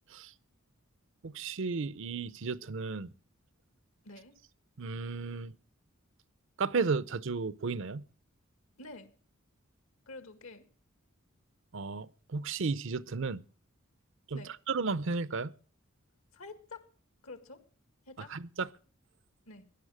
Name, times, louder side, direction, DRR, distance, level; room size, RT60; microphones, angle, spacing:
voice 1, 1.2-3.1 4.8-5.5 6.6-8.1 11.7-13.4 14.3-14.4 14.7-15.5 18.3-18.7, right 4 dB, 60° right, 0.6 m, -33 dB
voice 2, 4.0-4.3 8.8-9.1 10.1-10.6 14.3-14.5 16.3-16.9 17.2-17.6 18.1-18.3 19.5-19.6, left 3 dB, 75° left, 2.1 m, -47 dB
16.0 x 11.0 x 4.9 m
head